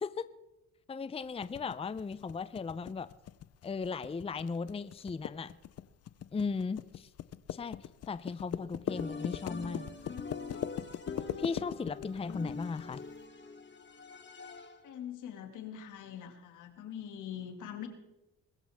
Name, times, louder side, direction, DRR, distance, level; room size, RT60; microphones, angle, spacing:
voice 1, 0.9-3.1 3.6-5.5 6.3-7.1 7.5-9.9 11.4-13.0, left 5 dB, 20° left, 15 dB, 0.6 m, -37 dB
sound 1, 1.4-13.0, left 11 dB, 55° left, 0.7 m, -41 dB
sound 2, 8.9-15.0, left 4 dB, 40° left, 2.2 m, -44 dB
voice 2, 14.8-17.9, left 9 dB, 80° left, 5 dB, 2.3 m, -43 dB
21.5 x 14.0 x 3.6 m, 0.98 s
cardioid pair, 90°, 30 cm